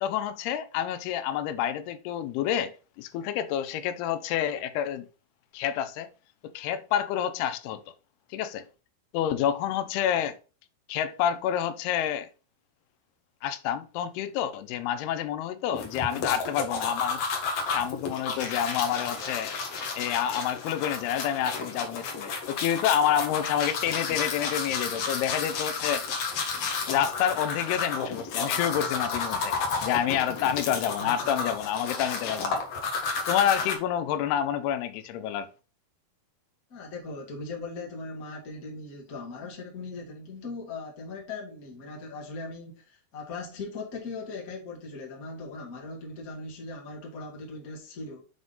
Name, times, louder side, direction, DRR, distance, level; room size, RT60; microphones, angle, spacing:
voice 1, 0.0-2.7 3.0-5.1 5.5-6.1 6.4-7.8 8.3-8.6 9.1-10.4 10.9-12.3 13.4-17.2 17.7-19.5 20.0-26.0 26.9-29.5 29.8-32.6 33.3-35.5, left 10 dB, 90° left, 2.7 m, -28 dB
sound 1, 15.7-33.8, left 4 dB, 70° left, 1.4 m, -32 dB
voice 2, 30.9-31.3 36.7-48.2, left 3 dB, 40° left, 1.3 m, -39 dB
7.9 x 3.6 x 3.9 m
omnidirectional pair, 4.5 m